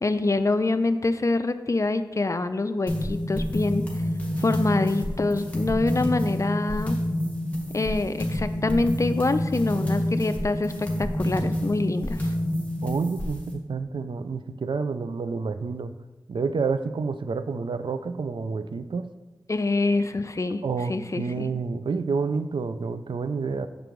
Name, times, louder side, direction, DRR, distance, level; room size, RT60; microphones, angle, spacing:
voice 1, 0.0-3.8 4.4-7.0 7.7-12.2 19.5-20.6 20.9-21.5, left 3 dB, 40° left, 11 dB, 0.4 m, -25 dB
sound 1, 2.9-13.5, equal, 15° left, 1.7 m, -28 dB
voice 2, 12.8-15.9 16.3-19.1 20.6-23.7, right 4 dB, 75° right, 11 dB, 0.3 m, -29 dB
6.8 x 5.0 x 3.1 m, 1.2 s
wide cardioid pair, 55°, 8 cm